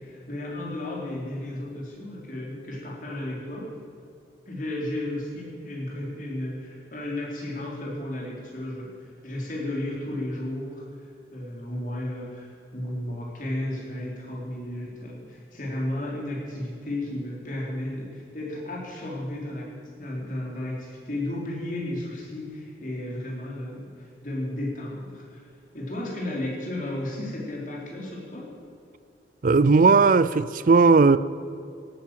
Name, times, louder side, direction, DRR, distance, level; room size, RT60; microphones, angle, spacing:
voice 1, 0.0-3.7 4.5-19.7 20.0-25.5 25.7-28.5, left 1 dB, 45° left, 3.9 m, -33 dB
voice 2, 29.4-31.2, right 4 dB, 45° right, 0.4 m, -17 dB
17.0 x 9.6 x 7.6 m
head